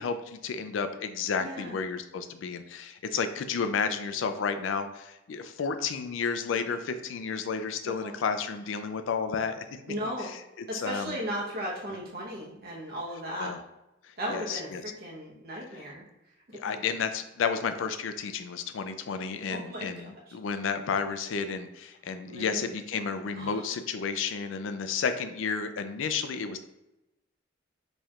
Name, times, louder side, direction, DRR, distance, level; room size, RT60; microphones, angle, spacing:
voice 1, 0.0-9.7 10.2-10.3 10.6-11.2 13.4-13.6 14.3-14.8 16.5-26.6, left 5 dB, 90° left, 9 dB, 0.4 m, -32 dB
voice 2, 1.4-1.7 7.8-8.1 9.9-10.3 10.7-13.5 14.2-16.0 16.5-16.7 19.5-20.3 22.2-22.7 23.4-23.7, equal, 55° right, -4 dB, 1.0 m, -36 dB
4.3 x 3.1 x 2.4 m, 0.93 s
head